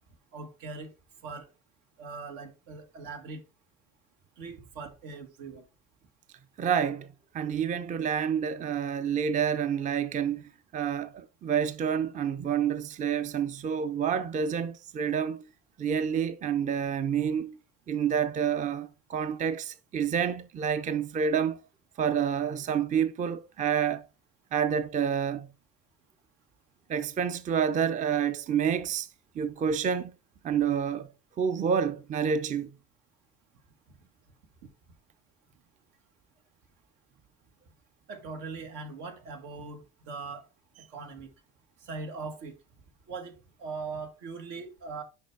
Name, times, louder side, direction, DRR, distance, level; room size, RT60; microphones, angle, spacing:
voice 1, 0.3-0.9 1.2-1.5 2.0-3.4 4.4-5.6 33.9-34.0 38.1-40.5 40.8-41.3 41.8-42.6 43.1-45.0, right 4 dB, 85° right, 1.7 m, -40 dB
voice 2, 6.6-7.1 7.3-10.4 10.7-15.5 15.8-17.6 17.9-21.6 22.0-24.0 24.5-25.5 26.9-29.1 29.4-30.1 30.4-31.1 31.4-32.7, right 7 dB, 25° right, 0.5 m, -28 dB
6.5 x 5.2 x 3.3 m
cardioid pair, 105°, 31 cm